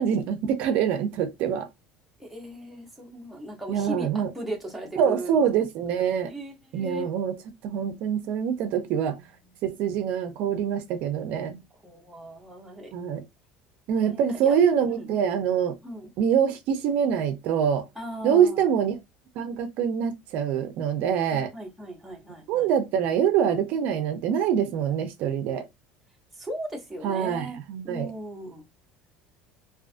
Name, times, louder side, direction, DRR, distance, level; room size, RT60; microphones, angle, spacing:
voice 1, 0.0-1.7 3.7-4.3 5.0-6.3 6.7-7.3 7.6-9.2 9.6-11.6 12.9-13.2 13.9-15.7 16.2-17.9 18.2-19.0 19.4-21.5 22.5-25.6 27.0-28.1, right 8 dB, 55° right, 0.4 m, -25 dB
voice 2, 2.2-5.4 6.3-7.1 8.9-9.2 11.8-12.9 13.9-14.5 14.9-15.1 15.8-16.1 18.0-18.7 21.3-22.7 26.4-27.6 27.8-28.6, right 1 dB, ahead, 0.6 m, -37 dB
2.4 x 2.4 x 2.4 m
cardioid pair, 160°, 3 cm